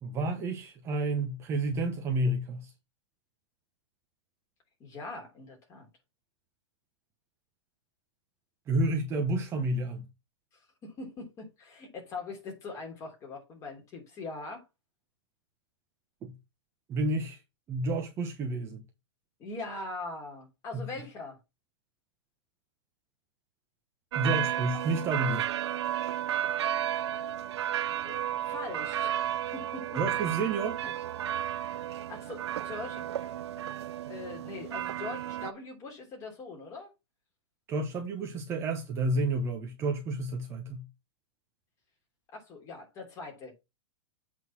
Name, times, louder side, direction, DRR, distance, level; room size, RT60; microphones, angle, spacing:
voice 1, 0.0-2.7 8.7-10.1 16.2-16.3 16.9-17.4 17.7-18.8 20.7-20.9 24.1-25.5 30.0-30.8 37.7-40.9, right 2 dB, 15° right, 0.9 m, -30 dB
voice 2, 4.8-5.9 10.8-14.6 19.4-21.4 24.3-24.6 28.0-29.2 29.5-30.0 30.8-30.9 31.4-31.8 32.1-33.4 34.1-36.9 42.3-43.5, left 3 dB, 20° left, 3.1 m, -42 dB
sound 1, 24.1-35.5, right 11 dB, 65° right, 0.5 m, -33 dB
8.0 x 3.9 x 6.1 m
hypercardioid pair, 160°, 15 cm